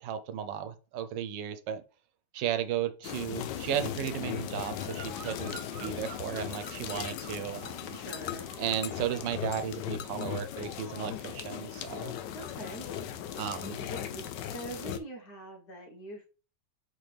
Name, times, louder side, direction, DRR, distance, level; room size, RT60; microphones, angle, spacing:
voice 1, 0.0-1.8 2.3-5.6 5.8-8.0 8.6-12.1 13.3-13.8, right 9 dB, 85° right, 1.4 m, -34 dB
sound 1, 3.0-15.0, left 10 dB, 80° left, 1.3 m, -38 dB
Bird vocalization bird call bird song, 4.6-8.2 8.4-8.8, right 8 dB, 65° right, 0.9 m, -50 dB
voice 2, 7.9-8.5 12.3-12.9 13.8-16.3, right 1 dB, 65° left, 2.0 m, -43 dB
6.1 x 4.5 x 3.4 m
omnidirectional pair, 1.9 m